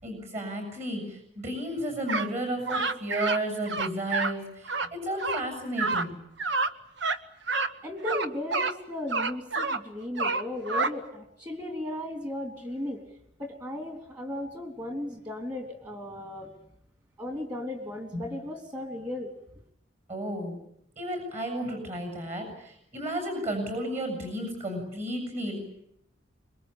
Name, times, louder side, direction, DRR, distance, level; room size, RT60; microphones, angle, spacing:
voice 1, 0.0-6.2 18.1-18.2 20.1-20.6 21.0-25.6, right 1 dB, 35° right, 4 dB, 7.6 m, -33 dB
sound 1, 2.1-2.3 2.7-3.4 3.7-4.3 4.6-4.9 5.2-5.4 5.8-6.0 6.4-6.7 7.0-7.2 7.5-7.7 8.0-8.7 9.1-9.8 10.2-10.9, right 3 dB, 60° right, 1.3 m, -28 dB
voice 2, 7.8-13.0 13.4-16.5 17.2-19.3, left 1 dB, 20° right, 5 dB, 3.4 m, -36 dB
26.0 x 23.0 x 8.9 m, 0.73 s
head